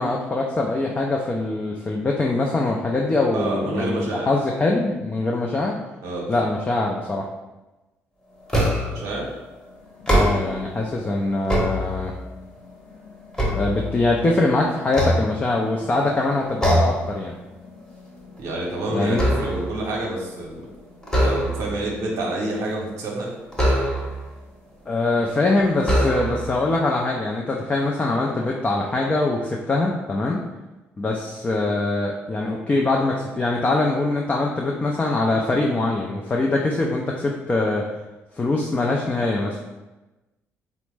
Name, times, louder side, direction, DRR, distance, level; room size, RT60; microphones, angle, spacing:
voice 1, 0.0-5.8 6.3-7.3 10.1-12.1 13.5-17.3 18.9-19.2 24.9-30.4 31.0-37.9 38.4-39.6, left 2 dB, 25° left, -1 dB, 0.4 m, -23 dB
voice 2, 3.3-4.3 6.0-6.5 8.9-9.3 18.4-20.7 21.2-23.3, right 2 dB, 80° right, -3 dB, 0.7 m, -28 dB
sound 1, 8.5-9.1 9.9-10.7 11.2-12.3 12.8-14.3 14.9-15.9 16.6-17.1 17.5-17.7 18.1-19.8 21.0-21.9 23.5-24.3 25.1-25.2 25.8-26.6, equal, 10° left, 0.9 m, -23 dB
3.3 x 2.0 x 3.2 m, 1.1 s
supercardioid pair, 80°, 5 cm